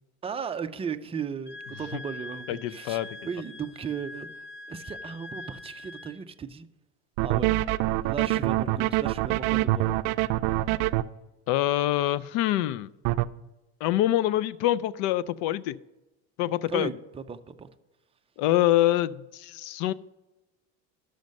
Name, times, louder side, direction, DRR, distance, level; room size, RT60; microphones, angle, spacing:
voice 1, 0.2-6.7 7.2-7.6 8.0-10.0 10.6-10.8 16.7-17.7, right 6 dB, 15° right, 0.5 m, -36 dB
Wind instrument woodwind instrument, 1.5-6.2, left 2 dB, 25° left, 0.7 m, -43 dB
voice 2, 2.5-3.1 11.5-12.9 13.8-15.8 16.4-16.9 18.4-19.9, left 14 dB, 65° left, 0.5 m, -25 dB
sound 1, 7.2-11.0 13.0-13.2, right 17 dB, 65° right, 0.5 m, -24 dB
12.0 x 6.5 x 5.3 m
supercardioid pair, 115°, 39 cm